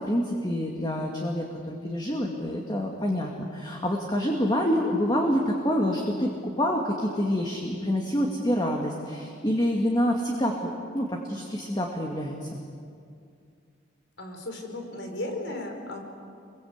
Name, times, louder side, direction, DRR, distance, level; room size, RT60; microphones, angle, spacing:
voice 1, 0.0-6.3 6.6-12.6, equal, 20° left, 0 dB, 2.2 m, -27 dB
voice 2, 14.2-16.0, left 1 dB, 70° left, 3 dB, 5.0 m, -35 dB
27.5 x 23.0 x 8.1 m, 2.3 s
head